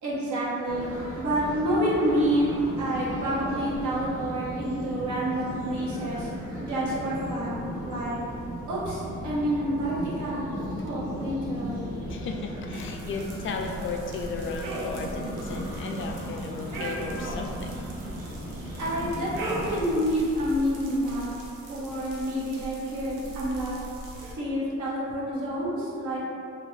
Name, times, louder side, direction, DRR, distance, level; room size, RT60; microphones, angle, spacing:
voice 1, 0.0-6.3 6.7-8.2 8.7-10.4 10.8-11.9 18.8-21.3 21.7-23.8 24.3-26.2, equal, 70° right, -7 dB, 1.0 m, -28 dB
sound 1, 0.6-19.7, equal, 50° right, 1.2 m, -36 dB
voice 2, 12.0-17.7, left 4 dB, 45° left, 3 dB, 0.4 m, -35 dB
sound 2, 12.7-24.4, right 1 dB, 85° right, 0.6 m, -39 dB
2.8 x 2.7 x 3.0 m, 2.6 s
cardioid pair, 90°, 30 cm